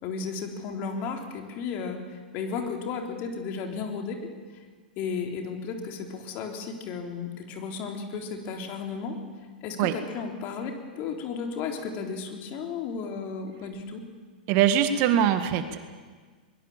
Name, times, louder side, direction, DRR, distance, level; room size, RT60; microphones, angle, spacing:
voice 1, 0.0-2.0 2.3-4.3 5.0-9.2 9.6-14.0, left 5 dB, 40° left, 3 dB, 3.7 m, -34 dB
voice 2, 14.5-15.8, right 9 dB, 40° right, 9 dB, 1.7 m, -22 dB
22.0 x 21.5 x 7.4 m, 1.5 s
figure-of-eight pair, 100°, 5 cm